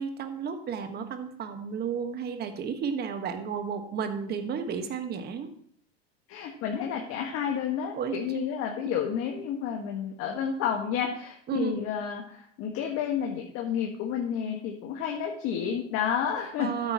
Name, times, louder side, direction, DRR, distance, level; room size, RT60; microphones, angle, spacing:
voice 1, 0.0-5.5 7.9-8.2 8.8-8.9 11.5-11.8 16.6-16.9, right 6 dB, 30° right, 7 dB, 1.6 m, -32 dB
voice 2, 6.3-16.7, left 8 dB, 45° left, 1 dB, 1.8 m, -30 dB
13.0 x 9.4 x 3.1 m, 0.62 s
hypercardioid pair, 110°, 32 cm